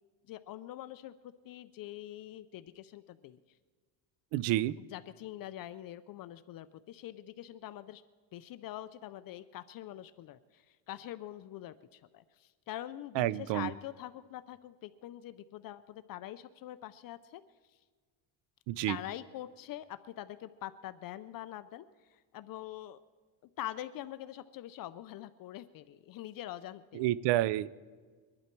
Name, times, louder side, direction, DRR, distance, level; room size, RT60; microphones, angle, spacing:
voice 1, 0.3-3.4 4.8-8.0 8.3-17.4 18.9-23.0 23.6-27.1, left 13 dB, 50° left, 0.5 m, -44 dB
voice 2, 4.3-4.7 13.2-13.7 18.7-19.0 26.9-27.7, right 15 dB, 70° right, 0.6 m, -29 dB
23.0 x 11.5 x 4.5 m
cardioid pair, 145°, 45 cm